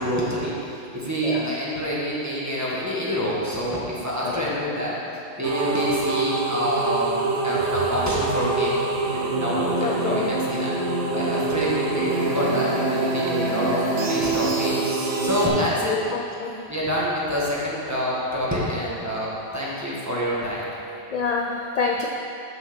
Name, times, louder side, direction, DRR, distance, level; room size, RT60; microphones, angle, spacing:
voice 1, 0.0-4.9 5.4-8.8 9.1-10.7 11.1-16.0 16.7-20.7, equal, 15° right, -7 dB, 1.6 m, -27 dB
sound 1, 5.4-15.5, right 3 dB, 90° right, 1.1 m, -25 dB
voice 2, 9.8-10.3 16.1-16.5 21.1-22.1, left 4 dB, 50° left, 1 dB, 0.5 m, -27 dB
7.1 x 6.2 x 6.1 m, 2.7 s
omnidirectional pair, 1.1 m